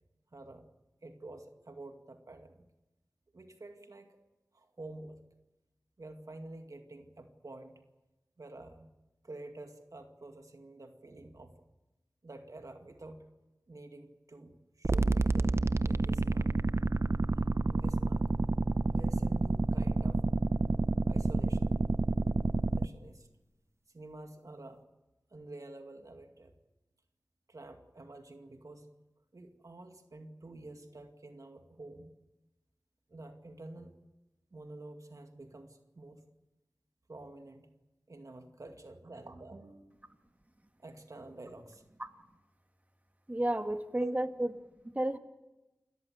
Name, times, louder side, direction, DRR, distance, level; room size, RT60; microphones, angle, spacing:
voice 1, 0.3-0.7 1.0-2.6 3.3-4.2 4.5-5.2 6.0-7.8 8.4-8.9 9.2-11.6 12.2-13.3 13.7-16.5 17.7-18.2 18.9-20.3 21.1-21.8 22.7-23.3 23.9-24.8 25.3-26.5 27.5-28.9 29.3-32.1 33.1-34.0 34.5-36.3 37.1-37.7 38.1-40.2 40.8-41.8 43.9-44.2, right 2 dB, 65° right, 5 dB, 2.2 m, -49 dB
sound 1, 14.8-22.9, right 3 dB, 45° right, 0.7 m, -29 dB
voice 2, 43.3-44.5 44.8-45.2, right 1 dB, 25° right, 7 dB, 1.8 m, -32 dB
29.0 x 13.5 x 9.3 m, 1.0 s
wide cardioid pair, 50°, 6 cm